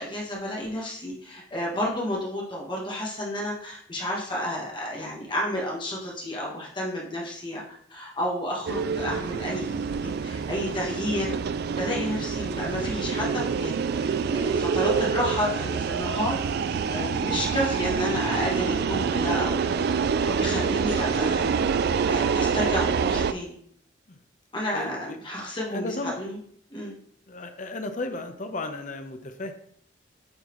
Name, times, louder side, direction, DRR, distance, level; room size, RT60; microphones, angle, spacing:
voice 1, 0.0-11.3 11.7-16.4 16.7-19.6 20.2-21.5 22.1-23.6 24.5-25.9 26.2-26.4 26.7-26.9, left 1 dB, 25° left, -3 dB, 1.3 m, -31 dB
sound 1, 8.7-23.3, right 6 dB, 55° right, 0.3 m, -26 dB
voice 2, 24.7-25.3 25.7-26.2 27.3-29.5, left 2 dB, 40° left, 6 dB, 0.7 m, -34 dB
8.8 x 4.0 x 3.1 m, 0.64 s
head